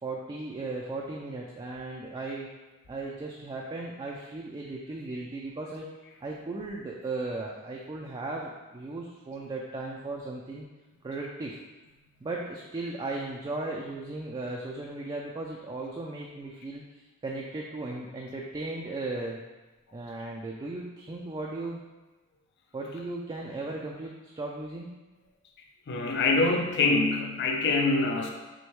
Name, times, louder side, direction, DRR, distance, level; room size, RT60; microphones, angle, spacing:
voice 1, 0.0-2.5 2.9-5.9 6.2-10.7 11.0-11.6 12.2-16.8 17.2-19.4 19.9-21.8 22.7-24.9, right 2 dB, 20° right, -2 dB, 0.3 m, -36 dB
voice 2, 25.9-28.3, left 3 dB, 55° left, 2 dB, 0.4 m, -25 dB
6.1 x 2.1 x 3.1 m, 1.2 s
head